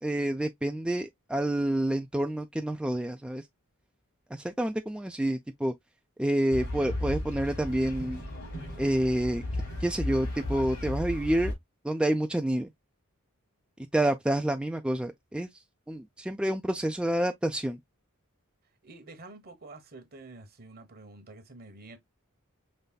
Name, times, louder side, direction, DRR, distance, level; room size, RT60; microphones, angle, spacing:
voice 1, 0.0-3.4 4.3-5.7 6.2-8.2 8.8-9.4 9.8-11.5 11.8-12.7 13.9-15.5 15.9-17.8, right 1 dB, 5° right, 0.3 m, -28 dB
sound 1, 6.5-11.5, left 1 dB, 75° left, 3.4 m, -35 dB
voice 2, 18.8-22.0, right 2 dB, 45° right, 1.0 m, -48 dB
5.3 x 3.3 x 2.2 m
head